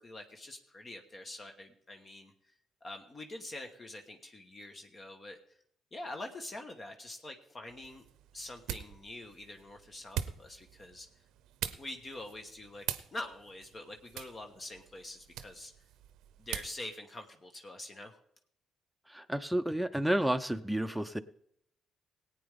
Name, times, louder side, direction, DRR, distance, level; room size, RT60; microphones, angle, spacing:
voice 1, 0.0-2.5 2.8-5.4 5.9-8.1 8.3-11.1 11.8-12.9 13.1-15.7 16.4-18.2, left 1 dB, 40° left, 4 dB, 1.3 m, -45 dB
sound 1, 7.7-16.8, right 11 dB, 75° right, 0.6 m, -44 dB
voice 2, 19.1-21.2, right 1 dB, 5° right, 8 dB, 0.7 m, -31 dB
18.5 x 8.8 x 3.7 m, 0.70 s
hypercardioid pair, 50°, 0 cm